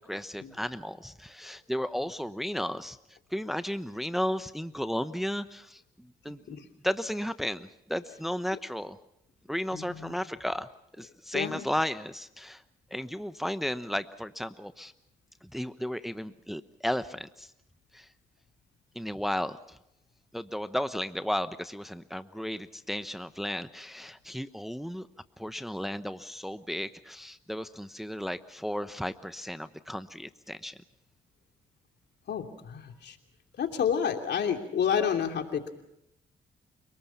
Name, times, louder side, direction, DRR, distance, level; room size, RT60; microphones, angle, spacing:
voice 1, 0.1-9.0 9.5-10.7 11.0-12.6 12.9-14.9 15.4-17.5 17.9-18.1 18.9-19.8 20.3-25.1 25.4-30.8, equal, ahead, 11 dB, 1.0 m, -34 dB
voice 2, 9.7-10.1 11.3-11.6 32.3-33.2 33.6-35.7, left 7 dB, 65° left, 4 dB, 2.9 m, -29 dB
30.0 x 19.5 x 5.8 m, 0.82 s
supercardioid pair, 50°, 19 cm